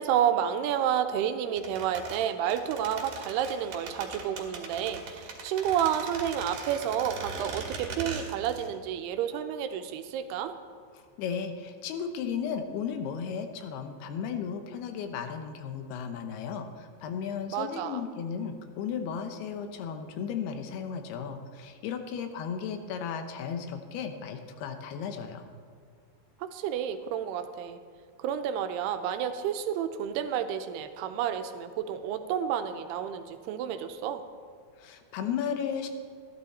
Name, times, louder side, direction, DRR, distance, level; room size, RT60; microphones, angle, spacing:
voice 1, 0.0-10.6 17.5-18.0 26.4-27.8 28.2-34.2, right 9 dB, 90° right, 9 dB, 2.8 m, -30 dB
sound 1, 1.6-8.7 9.0-9.1, right 5 dB, 55° right, 3.4 m, -40 dB
voice 2, 11.2-25.4 34.8-35.9, left 7 dB, 80° left, 7 dB, 3.0 m, -35 dB
15.5 x 12.5 x 4.3 m, 2.1 s
omnidirectional pair, 4.6 m